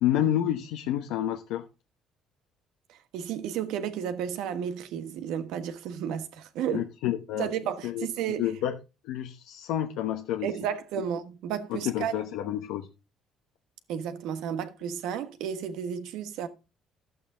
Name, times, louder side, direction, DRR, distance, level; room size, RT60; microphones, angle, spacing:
voice 1, 0.0-1.6 6.7-7.5 7.8-8.1 8.4-8.7 9.0-10.5 11.7-12.9 14.5-14.6, left 11 dB, 85° left, 0.9 m, -29 dB
voice 2, 2.9-6.9 7.4-8.5 10.4-12.2 13.9-16.5, right 9 dB, 80° right, 1.4 m, -32 dB
12.0 x 7.8 x 3.9 m
cardioid pair, 145°, 0 cm